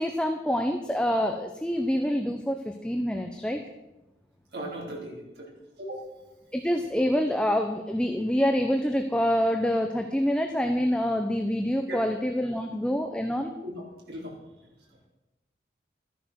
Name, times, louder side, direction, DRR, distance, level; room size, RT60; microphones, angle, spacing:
voice 1, 0.0-3.6 6.5-13.5, equal, 5° left, 4 dB, 0.8 m, -26 dB
voice 2, 4.5-5.5 5.8-6.1 11.9-12.0 12.5-12.6 13.6-15.0, right 1 dB, 75° right, -2 dB, 4.4 m, -39 dB
13.5 x 10.0 x 6.3 m, 0.97 s
head